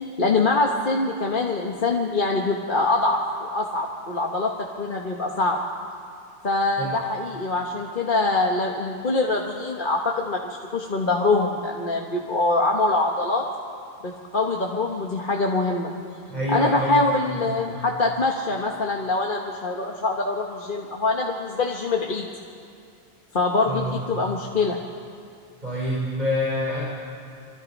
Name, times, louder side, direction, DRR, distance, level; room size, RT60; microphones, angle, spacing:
voice 1, 0.2-4.5 4.8-5.6 6.4-13.4 14.0-15.9 16.5-22.3 23.3-24.8, left 3 dB, 55° left, 0 dB, 1.5 m, -24 dB
voice 2, 16.3-17.6 23.7-24.0 25.6-26.8, left 1 dB, 45° right, -5 dB, 4.0 m, -27 dB
25.0 x 24.5 x 5.3 m, 2.4 s
omnidirectional pair, 1.0 m